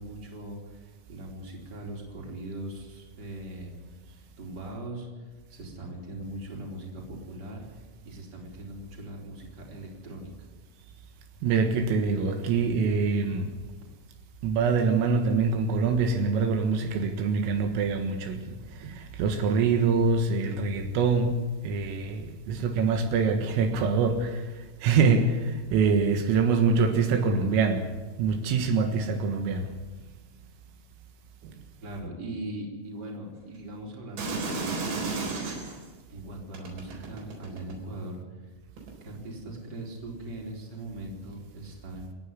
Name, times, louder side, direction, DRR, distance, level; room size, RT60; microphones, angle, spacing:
voice 1, 0.0-3.9 4.1-7.6 8.0-10.5 31.8-35.1 36.1-38.5 39.0-42.1, right 1 dB, 20° right, -1 dB, 4.1 m, -40 dB
voice 2, 11.4-13.6 14.4-18.5 18.7-21.4 21.6-24.4 24.8-27.9 28.2-29.7 31.4-31.5, right 5 dB, 80° right, 5 dB, 4.2 m, -25 dB
sound 1, 34.2-35.9 36.5-37.9 38.8-38.9, right 3 dB, 60° right, 6.0 m, -32 dB
27.5 x 10.5 x 9.8 m, 1.2 s
omnidirectional pair, 5.9 m